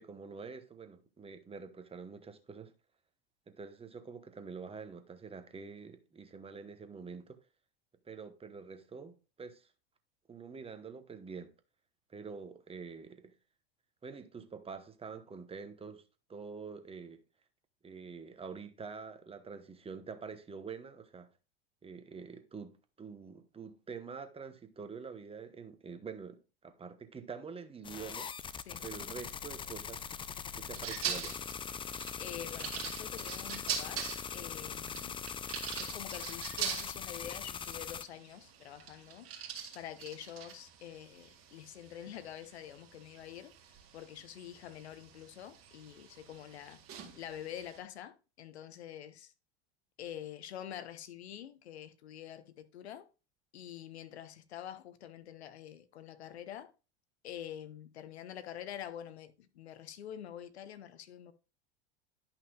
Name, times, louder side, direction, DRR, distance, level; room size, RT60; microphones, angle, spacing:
voice 1, 0.0-2.7 3.5-7.4 8.1-9.7 10.3-11.5 12.1-13.3 14.0-16.0 16.3-17.2 17.8-21.3 21.8-28.3 28.8-30.1 30.5-31.4, right 5 dB, 20° right, 1.0 m, -46 dB
sound 1, 27.8-38.0, left 7 dB, 15° left, 0.4 m, -42 dB
sound 2, 30.7-47.8, right 8 dB, 45° right, 1.9 m, -44 dB
voice 2, 32.2-35.2 35.8-39.3 39.7-43.5 43.9-46.8 47.2-49.3 50.0-53.1 53.5-56.7 57.2-61.3, left 10 dB, 85° left, 0.8 m, -46 dB
11.0 x 5.8 x 2.3 m
hypercardioid pair, 95°, 32 cm